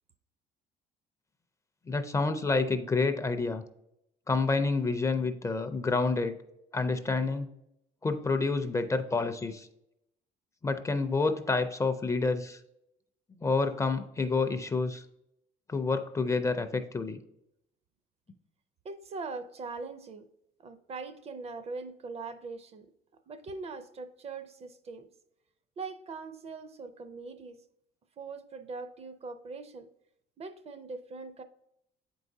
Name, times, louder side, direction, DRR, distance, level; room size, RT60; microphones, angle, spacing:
voice 1, 1.9-3.6 4.3-6.4 6.7-7.5 8.0-9.7 10.6-12.6 13.4-15.0 15.7-17.2, left 3 dB, 20° left, 8 dB, 0.4 m, -28 dB
voice 2, 18.8-20.3 20.6-22.9 23.3-25.1 25.8-27.6 28.2-29.9 30.4-31.4, right 4 dB, 35° right, 11 dB, 0.5 m, -41 dB
7.7 x 4.6 x 2.6 m, 0.81 s
cardioid pair, 110°, 17 cm